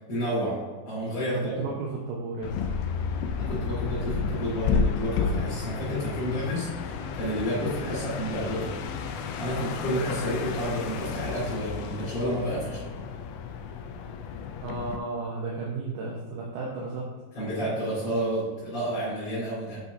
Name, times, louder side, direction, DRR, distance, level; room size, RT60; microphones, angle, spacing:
voice 1, 0.1-0.6 0.8-1.6 3.4-8.7 9.4-12.9 17.3-19.8, equal, 55° left, -12 dB, 3.8 m, -30 dB
voice 2, 1.3-2.6 14.6-17.1, right 3 dB, 75° right, -3 dB, 2.2 m, -33 dB
sound 1, 2.4-15.0, left 5 dB, 80° left, 2.3 m, -32 dB
sound 2, 2.8-3.3 5.1-6.1 6.5-10.6, right 4 dB, 50° right, 2.8 m, -49 dB
8.3 x 5.9 x 2.6 m, 1.3 s
omnidirectional pair, 5.0 m